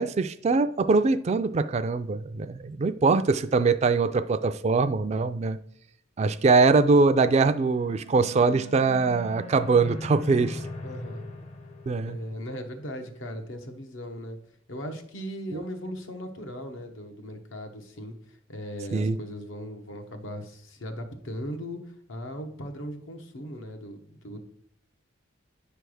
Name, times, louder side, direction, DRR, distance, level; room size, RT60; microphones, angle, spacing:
voice 1, 0.0-5.6 6.2-10.6 11.9-12.2 15.5-15.6 18.9-19.2, right 4 dB, 35° right, 0.3 m, -22 dB
sound 1, 7.6-12.9, left 1 dB, 35° left, 0.6 m, -40 dB
voice 2, 10.8-11.3 12.1-14.4 14.7-24.4, equal, 80° left, 1.0 m, -38 dB
9.6 x 3.4 x 6.2 m
head